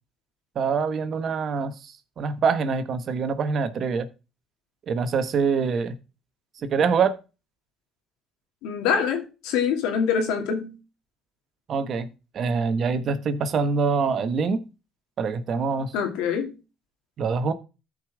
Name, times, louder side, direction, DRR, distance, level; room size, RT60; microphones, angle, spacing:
voice 1, 0.5-4.1 4.9-5.9 6.6-7.2 11.7-12.1 12.3-14.6 15.2-15.9 17.2-17.5, right 5 dB, 55° right, 1.2 m, -25 dB
voice 2, 8.6-10.7 15.9-16.5, left 7 dB, 85° left, 2.4 m, -25 dB
13.5 x 5.2 x 3.5 m
supercardioid pair, 80°, 0 cm